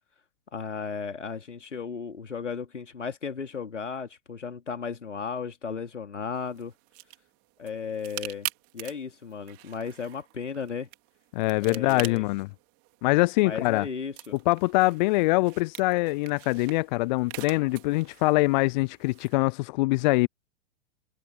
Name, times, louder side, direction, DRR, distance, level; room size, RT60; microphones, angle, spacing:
voice 1, 0.5-6.7 7.6-8.5 8.7-10.9 11.6-12.3 13.4-14.4, left 6 dB, 80° left, 3.2 m, -35 dB
sound 1, 6.3-19.4, right 26 dB, 40° right, 3.0 m, -44 dB
voice 2, 11.3-12.5 13.0-13.9 14.5-20.3, left 22 dB, 40° left, 0.6 m, -24 dB
figure-of-eight pair, 100°, 36 cm